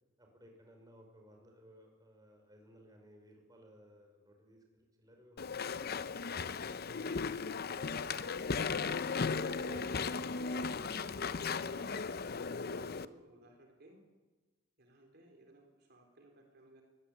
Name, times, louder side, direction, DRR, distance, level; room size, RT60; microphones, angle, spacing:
voice 1, 0.2-5.7 6.2-6.9 7.2-12.0, equal, 20° right, 2 dB, 5.5 m, -58 dB
Walk footsteps / Chatter / Squeak, 5.4-13.1, left 5 dB, 50° left, 0.7 m, -36 dB
voice 2, 12.5-14.0 14.8-16.8, right 1 dB, 55° right, 2 dB, 3.8 m, -60 dB
22.5 x 18.5 x 8.7 m, 1.2 s
head